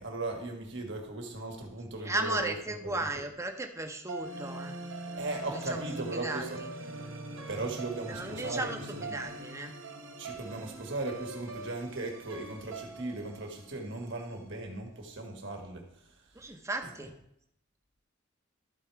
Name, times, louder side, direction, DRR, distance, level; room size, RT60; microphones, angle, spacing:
voice 1, 0.0-3.1 5.2-6.6 7.5-8.7 9.0-9.2 10.2-16.1 16.8-16.9, right 2 dB, 65° right, 2 dB, 1.7 m, -37 dB
voice 2, 2.0-4.8 5.5-5.9 6.1-6.7 8.1-9.7 16.3-17.1, right 2 dB, 15° right, 4 dB, 0.9 m, -35 dB
sound 1, 4.1-14.4, right 2 dB, 85° right, 1.2 m, -42 dB
13.0 x 4.4 x 4.7 m, 0.73 s
head